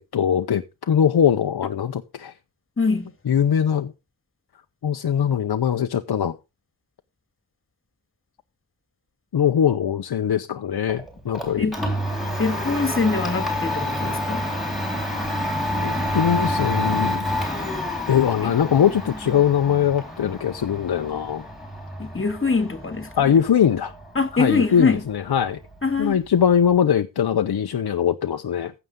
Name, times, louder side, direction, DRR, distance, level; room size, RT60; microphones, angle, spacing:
voice 1, 0.0-2.3 3.3-3.9 4.8-6.4 9.3-11.7 15.8-17.3 18.1-21.4 23.2-23.9 24.3-25.6 26.0-28.7, left 8 dB, 50° left, 0.7 m, -21 dB
voice 2, 2.8-3.1 11.6-11.8 12.4-14.5 18.4-18.5 22.0-23.4 24.2-25.0 25.8-26.2, left 4 dB, 25° left, 1.8 m, -23 dB
Domestic sounds home sounds, 10.9-26.7, left 1 dB, ahead, 3.9 m, -29 dB
15.0 x 6.8 x 3.7 m
wide cardioid pair, 140°, 49 cm